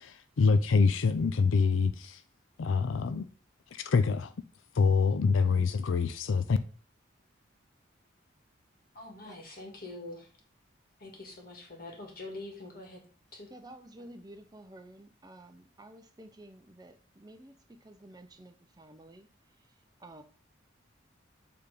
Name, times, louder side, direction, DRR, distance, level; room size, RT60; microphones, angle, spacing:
voice 1, 0.0-2.2 2.6-3.3 3.7-4.3 4.7-6.6, left 5 dB, 85° left, 0.5 m, -26 dB
voice 2, 8.9-10.3 11.0-13.0 13.3-13.5, left 2 dB, 45° left, 1.9 m, -44 dB
voice 3, 13.5-19.3 20.0-20.2, right 1 dB, 20° right, 0.6 m, -51 dB
7.1 x 3.5 x 4.9 m
head